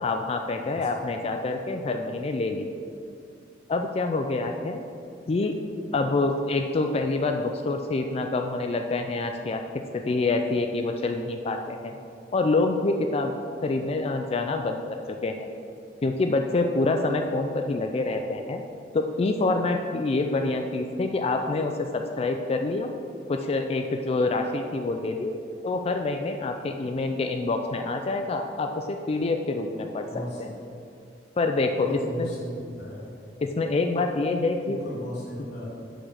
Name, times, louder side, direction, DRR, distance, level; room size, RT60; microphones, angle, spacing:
voice 1, 0.0-2.7 3.7-4.8 5.3-5.5 5.9-9.6 9.9-12.0 12.3-13.3 13.6-14.8 15.1-15.5 16.0-18.6 18.9-22.9 23.3-25.3 25.6-30.5 31.4-32.3 33.4-34.8, left 3 dB, 35° left, 5 dB, 0.4 m, -26 dB
voice 2, 30.1-30.6 31.8-33.1 34.6-35.7, equal, 65° left, -9 dB, 1.8 m, -36 dB
6.0 x 5.0 x 6.4 m, 2.5 s
head